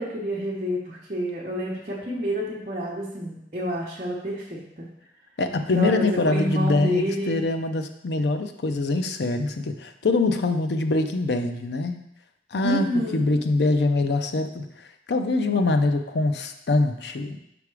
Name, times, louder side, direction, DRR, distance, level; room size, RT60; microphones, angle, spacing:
voice 1, 0.0-4.9 5.7-7.5 12.6-13.4, equal, 40° right, -7 dB, 0.9 m, -29 dB
voice 2, 5.4-12.0 12.5-17.4, left 2 dB, 70° left, 7 dB, 0.5 m, -24 dB
5.7 x 3.5 x 4.7 m, 0.80 s
head